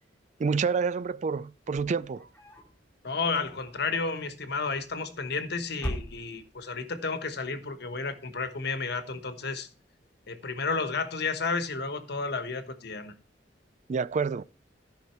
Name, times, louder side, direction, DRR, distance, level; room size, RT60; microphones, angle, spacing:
voice 1, 0.4-2.3 13.9-14.4, right 5 dB, 40° right, 0.3 m, -28 dB
sound 1, 1.6-2.8 3.3-3.9 4.9-5.4 5.7-6.7, equal, 10° left, 3.0 m, -39 dB
voice 2, 3.0-9.7 10.3-13.1, left 4 dB, 60° left, 1.2 m, -32 dB
13.5 x 5.6 x 4.4 m
head